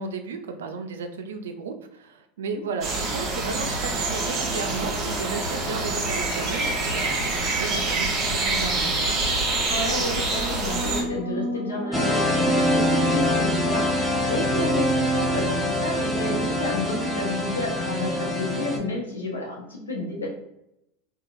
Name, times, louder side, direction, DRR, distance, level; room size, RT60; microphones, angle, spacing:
voice 1, 0.0-9.0, right 4 dB, 80° right, 7 dB, 0.4 m, -34 dB
sound 1, 2.8-11.0, right 2 dB, 40° right, 0.9 m, -26 dB
sound 2, 2.9-16.5, equal, 65° left, 1.0 m, -38 dB
voice 2, 9.6-20.3, left 2 dB, 90° left, -1 dB, 0.8 m, -30 dB
sound 3, 11.9-18.8, equal, ahead, 0.6 m, -24 dB
2.9 x 2.3 x 2.6 m, 0.81 s
hypercardioid pair, 85°, 0 cm